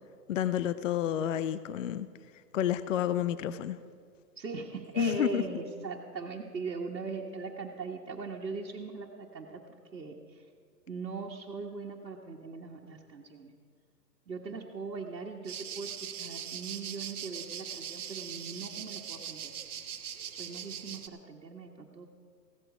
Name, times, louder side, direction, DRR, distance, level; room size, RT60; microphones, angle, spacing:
voice 1, 0.3-2.1 2.5-3.8 5.0-5.4, left 10 dB, 50° left, 14 dB, 0.6 m, -30 dB
voice 2, 4.3-9.6 9.9-10.4 10.9-13.5 14.3-19.5 20.3-22.1, right 4 dB, 85° right, -2 dB, 1.5 m, -40 dB
sound 1, 15.4-21.1, right 8 dB, 60° right, 1.1 m, -41 dB
15.5 x 13.0 x 4.9 m, 2.1 s
hypercardioid pair, 135°, 50 cm